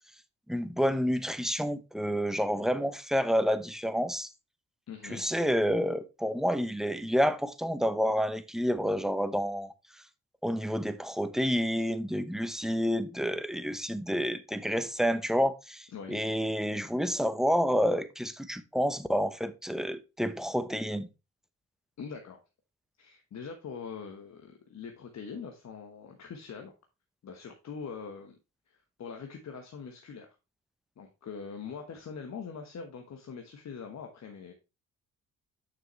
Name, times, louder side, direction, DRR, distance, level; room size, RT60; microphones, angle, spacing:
voice 1, 0.5-4.3 5.0-9.7 10.4-21.1, equal, ahead, 0.9 m, -29 dB
voice 2, 4.9-5.2 15.9-16.2 22.0-22.4 23.0-26.7 27.2-28.4 28.7-30.3 31.0-34.5, left 6 dB, 55° left, 1.2 m, -43 dB
7.0 x 6.1 x 3.1 m
supercardioid pair, 50°, 32 cm